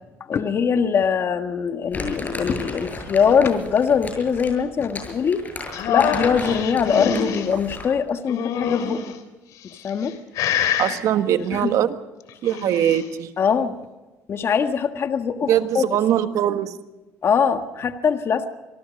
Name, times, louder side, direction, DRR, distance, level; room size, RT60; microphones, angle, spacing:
voice 1, 0.3-5.4 5.9-9.0 9.8-10.2 11.5-11.7 13.4-13.8 14.3-15.5 15.8-15.9 17.2-18.5, left 6 dB, 45° left, 7 dB, 1.6 m, -22 dB
Crumpling crinkling, 1.9-8.0, left 2 dB, 30° left, 7.6 m, -34 dB
sound 1, 5.7-7.5 8.3-9.1 9.8-10.1 10.3-11.0 12.3-13.0, left 8 dB, 75° left, 3.3 m, -25 dB
voice 2, 10.8-12.0 12.4-13.3 15.5-16.8, right 10 dB, 70° right, 9 dB, 1.5 m, -21 dB
26.5 x 19.0 x 5.3 m, 1.1 s
cardioid pair, 95°, 6 cm